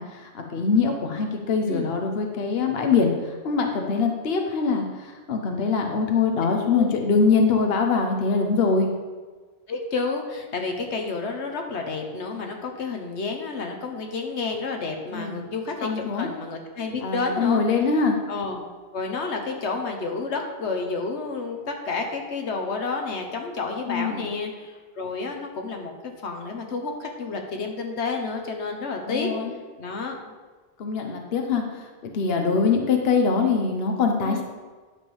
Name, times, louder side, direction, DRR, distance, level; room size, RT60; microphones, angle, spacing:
voice 1, 0.0-8.9 15.1-15.4 15.8-16.3 17.0-18.2 23.9-24.3 29.1-29.5 30.8-34.4, left 4 dB, 65° left, 3 dB, 1.1 m, -23 dB
voice 2, 9.7-17.6 18.3-18.6 18.9-29.3 29.8-30.2 34.2-34.4, left 4 dB, 90° left, 3 dB, 1.4 m, -30 dB
10.5 x 3.6 x 7.0 m, 1.4 s
omnidirectional pair, 1.1 m